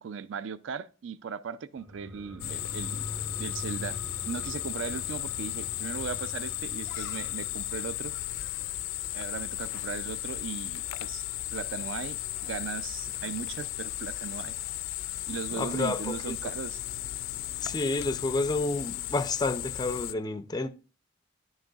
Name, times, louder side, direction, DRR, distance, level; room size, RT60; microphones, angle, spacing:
voice 1, 0.0-3.1 3.4-4.0 4.2-8.1 9.1-11.2 11.5-14.6 15.3-16.8, right 6 dB, 70° right, 0.4 m, -38 dB
sound 1, 1.8-10.9 11.2-11.3, left 1 dB, 10° right, 0.7 m, -44 dB
sound 2, 2.4-20.1, left 14 dB, 90° left, 0.4 m, -35 dB
voice 2, 15.6-16.4 17.6-20.7, left 3 dB, 20° left, 0.4 m, -30 dB
10.5 x 6.4 x 2.3 m
head